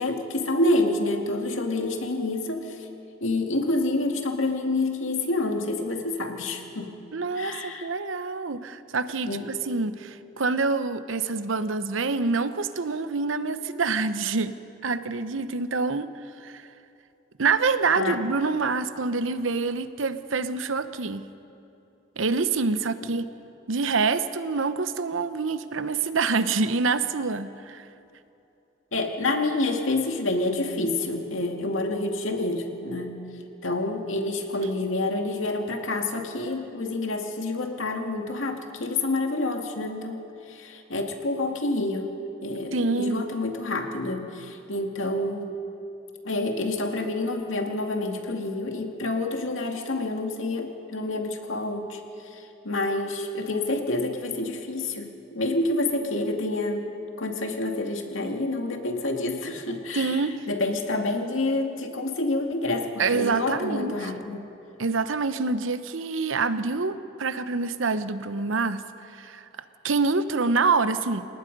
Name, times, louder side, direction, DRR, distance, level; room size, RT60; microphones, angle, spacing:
voice 1, 0.0-2.9 3.2-7.0 7.4-7.9 9.3-9.5 18.0-18.2 28.9-33.3 33.6-42.2 42.4-45.5 46.2-52.0 52.3-56.9 57.2-60.2 60.5-64.5, left 2 dB, 85° left, 3 dB, 2.2 m, -28 dB
voice 2, 7.1-14.6 14.8-16.1 16.4-16.7 17.4-21.3 22.2-23.2 23.7-27.8 42.7-43.3 59.9-60.4 63.0-64.1 64.8-69.5 69.8-71.3, right 4 dB, 80° right, 12 dB, 0.9 m, -26 dB
28.5 x 18.5 x 5.4 m, 2.8 s
head